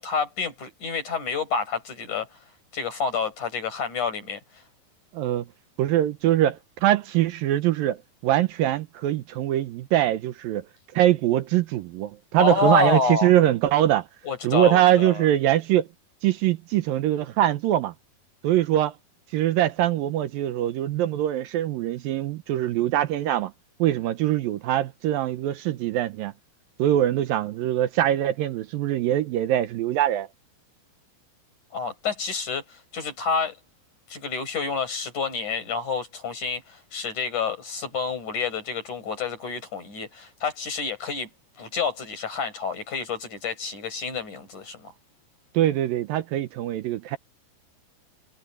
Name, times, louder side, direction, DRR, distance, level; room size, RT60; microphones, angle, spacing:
voice 1, 0.0-2.4 2.7-4.4 12.4-13.3 14.2-15.2 31.7-33.6 34.1-41.3 41.6-44.9, left 5 dB, 50° left, 7.5 m, -28 dB
voice 2, 5.1-5.5 5.8-10.6 10.9-14.1 14.4-15.9 16.2-17.9 18.4-18.9 19.3-23.5 23.8-26.3 26.8-30.3 45.5-47.2, right 13 dB, 75° right, 2.5 m, -23 dB
omnidirectional pair, 4.3 m